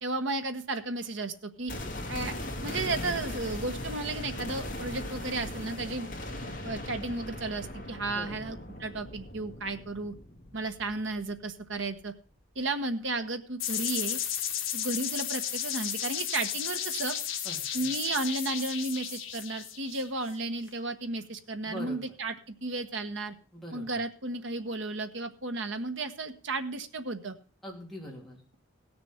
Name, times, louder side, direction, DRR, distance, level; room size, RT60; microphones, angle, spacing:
voice 1, 0.0-1.7 2.1-2.3 2.6-6.1 6.6-10.1 10.5-12.1 12.5-14.2 14.7-17.2 17.7-23.3 23.7-27.3, right 2 dB, 65° right, 6 dB, 1.3 m, -33 dB
sound 1, 1.7-11.7 12.0-12.1, left 1 dB, 40° left, 2.5 m, -39 dB
voice 2, 8.1-8.5 17.4-17.9 21.6-22.1 23.5-23.8 27.6-28.4, equal, ahead, -3 dB, 3.4 m, -43 dB
sound 2, 13.6-20.3, left 10 dB, 70° left, 1.7 m, -34 dB
16.5 x 6.9 x 5.8 m, 0.38 s
head